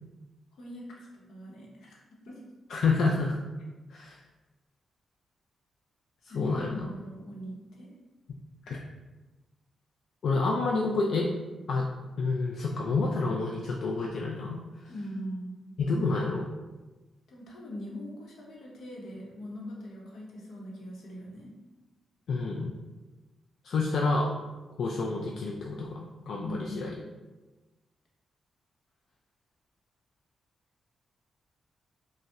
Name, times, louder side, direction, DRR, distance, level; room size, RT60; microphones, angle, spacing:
voice 1, 0.5-2.4 6.3-7.9 14.9-15.6 17.3-21.5 26.4-27.0, equal, 80° left, -3 dB, 0.8 m, -41 dB
voice 2, 2.7-3.4 3.9-4.2 6.3-6.9 8.7-8.8 10.2-11.3 11.7-11.9 12.2-14.6 15.8-16.5 22.3-22.7 23.6-24.3 24.8-26.9, left 3 dB, 60° left, -1 dB, 0.3 m, -28 dB
5.1 x 2.1 x 2.4 m, 1.2 s
wide cardioid pair, 160°, 0 cm